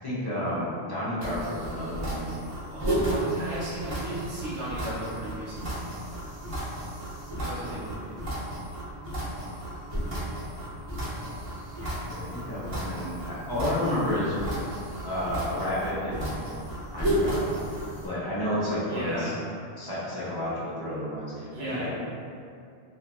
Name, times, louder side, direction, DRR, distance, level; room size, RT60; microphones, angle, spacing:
voice 1, 0.0-2.3 7.3-7.7 11.8-14.4 15.0-16.4 16.9-17.6 18.0-19.2 19.8-21.9, left 1 dB, 25° left, -10 dB, 0.6 m, -31 dB
sound 1, 1.2-18.1, right 1 dB, 35° right, 0.7 m, -33 dB
voice 2, 2.7-5.8 7.3-8.2 18.9-19.4 21.5-21.9, right 1 dB, 80° right, -8 dB, 0.9 m, -35 dB
2.8 x 2.5 x 2.3 m, 2.4 s
omnidirectional pair, 1.1 m